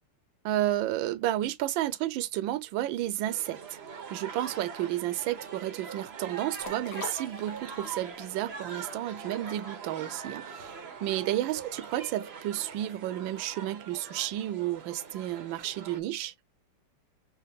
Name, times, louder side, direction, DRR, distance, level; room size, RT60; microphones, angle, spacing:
voice 1, 0.4-3.8 4.1-16.3, right 13 dB, 75° right, 1.2 m, -32 dB
sound 1, 3.2-16.0, right 6 dB, 55° right, 0.7 m, -43 dB
sound 2, 6.5-8.1 8.4-8.5, left 5 dB, 55° left, 1.1 m, -41 dB
4.7 x 2.9 x 3.5 m
omnidirectional pair, 2.4 m